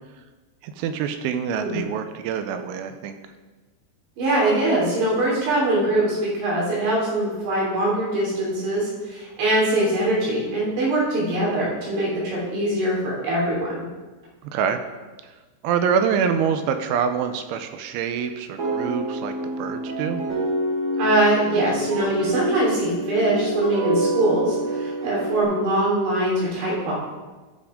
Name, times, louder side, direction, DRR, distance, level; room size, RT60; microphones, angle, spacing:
voice 1, 0.6-3.2 14.4-14.8 15.2-15.3 15.6-20.2, right 7 dB, 80° right, 8 dB, 3.0 m, -25 dB
voice 2, 4.2-13.8 21.0-26.9, right 1 dB, 65° right, -5 dB, 5.5 m, -22 dB
sound 1, 18.6-25.4, right 1 dB, 35° right, 4.0 m, -27 dB
15.0 x 5.9 x 5.0 m, 1.3 s
omnidirectional pair, 5.8 m